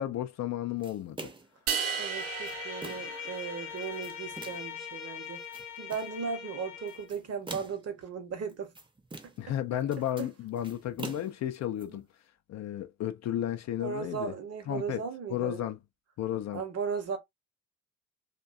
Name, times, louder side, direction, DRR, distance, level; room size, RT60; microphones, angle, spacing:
voice 1, 0.0-1.3 9.4-12.1 12.5-14.3 14.7-15.0 15.3-15.8 16.2-16.6, left 11 dB, 45° left, 0.5 m, -33 dB
sound 1, 0.8-1.6 2.2-3.2 3.8-4.7 5.3-6.2 6.9-7.9 8.5-9.5 9.8-11.8, right 3 dB, 15° right, 0.7 m, -45 dB
sound 2, 1.7-4.0, right 6 dB, 75° right, 0.7 m, -35 dB
Bowed string instrument, 1.9-7.1, left 8 dB, 85° left, 0.7 m, -42 dB
voice 2, 2.0-5.4 5.8-8.7 9.2-9.3 10.2-10.3 11.9-12.0 13.8-15.6 16.5-17.2, right 6 dB, 40° right, 0.9 m, -36 dB
2.6 x 2.2 x 2.4 m
hypercardioid pair, 45°, 38 cm